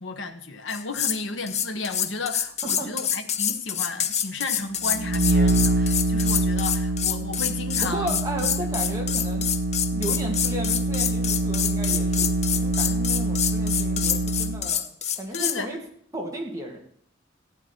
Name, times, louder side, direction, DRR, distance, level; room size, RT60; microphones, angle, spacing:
voice 1, 0.0-8.2 15.3-15.7, left 3 dB, 70° left, 1.2 m, -33 dB
sound 1, 0.7-1.2 1.5-15.6, left 9 dB, 35° left, 0.7 m, -27 dB
sound 2, 4.8-14.7, right 2 dB, 50° right, 0.6 m, -25 dB
voice 2, 7.8-9.5 9.9-14.8 15.2-15.8 16.1-16.8, right 1 dB, 15° right, 2.4 m, -34 dB
15.5 x 9.0 x 4.5 m
head